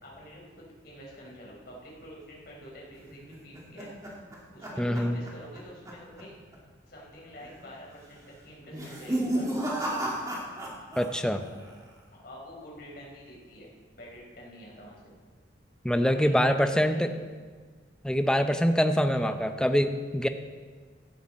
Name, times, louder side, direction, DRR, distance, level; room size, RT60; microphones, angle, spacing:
voice 1, 0.0-3.9 4.5-6.4 6.9-10.0 12.1-15.1 16.0-17.1 19.2-19.5, equal, 55° left, -3 dB, 4.2 m, -47 dB
sound 1, 3.1-5.6 5.9-6.2 6.5-6.6 7.4-7.8 8.6-11.1 11.3-11.9, right 1 dB, 20° right, 2.5 m, -33 dB
voice 2, 4.8-5.2 11.0-11.5 15.8-17.1 18.0-20.3, equal, 5° left, 8 dB, 0.6 m, -24 dB
16.0 x 11.5 x 4.2 m, 1.5 s
head